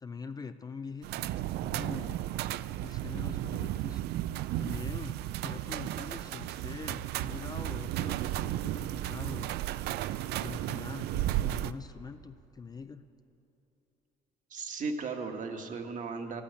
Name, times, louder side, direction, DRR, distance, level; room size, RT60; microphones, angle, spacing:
voice 1, 0.0-2.2 2.8-4.2 4.6-9.5 10.4-13.0, left 5 dB, 25° left, 10 dB, 0.4 m, -44 dB
sound 1, 1.0-11.7, right 14 dB, 75° right, 0.4 m, -34 dB
voice 2, 14.5-16.4, right 4 dB, 50° right, 4 dB, 1.5 m, -36 dB
13.0 x 8.6 x 9.2 m, 2.9 s
cardioid pair, 110°, 17 cm